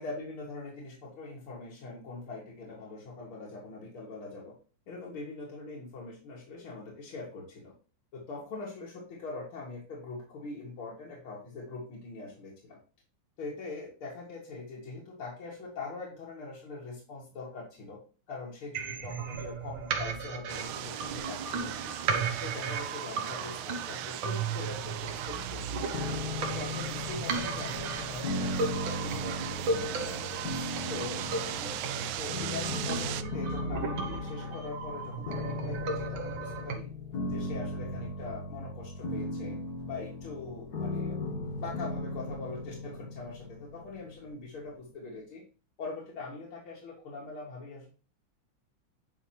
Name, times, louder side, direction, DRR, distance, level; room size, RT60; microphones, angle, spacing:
voice 1, 0.0-4.5 4.9-7.7 8.1-12.8 13.4-18.0 18.3-21.7 22.1-25.9 26.4-30.2 30.5-36.9 37.2-39.6 39.9-41.2 41.5-45.4 45.8-47.9, left 3 dB, 90° left, -4 dB, 2.7 m, -42 dB
sound 1, 18.7-36.7, right 4 dB, 70° right, 1.9 m, -36 dB
sound 2, 20.5-33.2, right 12 dB, 90° right, 1.5 m, -38 dB
sound 3, 25.9-44.9, left 2 dB, 55° left, 1.6 m, -37 dB
9.6 x 5.3 x 2.9 m, 0.37 s
omnidirectional pair, 2.3 m